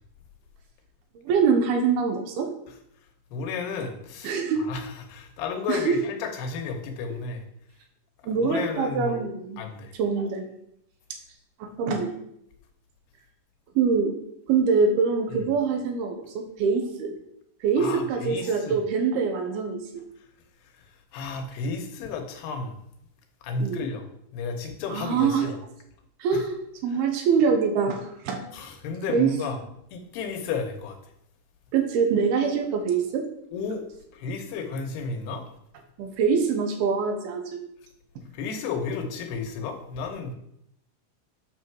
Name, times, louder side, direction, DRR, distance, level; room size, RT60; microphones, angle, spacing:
voice 1, 1.3-2.5 4.2-4.6 5.7-6.0 8.2-9.6 10.0-10.4 11.6-12.1 13.8-14.1 14.5-17.1 17.6-20.0 23.6-23.8 24.9-25.5 26.2-26.6 26.8-28.4 29.1-29.3 31.7-33.2 36.0-37.6, right 5 dB, 75° right, 4 dB, 2.9 m, -24 dB
voice 2, 3.3-7.4 8.4-9.1 9.6-9.9 17.8-18.8 21.1-22.8 23.4-24.1 24.3-25.6 26.3-26.4 26.9-27.0 28.5-29.6 29.9-31.0 33.5-33.8 34.1-35.5 38.3-40.3, left 4 dB, 80° left, 5 dB, 3.1 m, -32 dB
8.9 x 6.2 x 4.7 m, 0.75 s
omnidirectional pair, 4.7 m